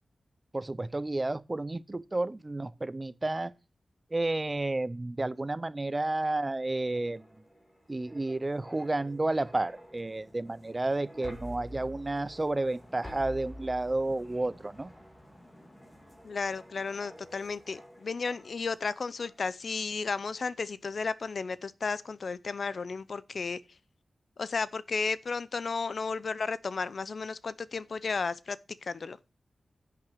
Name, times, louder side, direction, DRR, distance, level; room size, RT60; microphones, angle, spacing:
voice 1, 0.5-3.5 4.1-7.3 7.9-14.9, right 2 dB, 20° right, 0.5 m, -31 dB
sound 1, 6.5-18.8 19.2-19.4, equal, 10° left, 2.4 m, -49 dB
voice 2, 16.2-23.6 24.4-28.6 28.8-29.2, left 4 dB, 55° left, 0.6 m, -33 dB
10.5 x 5.9 x 6.1 m
wide cardioid pair, 145°, 0 cm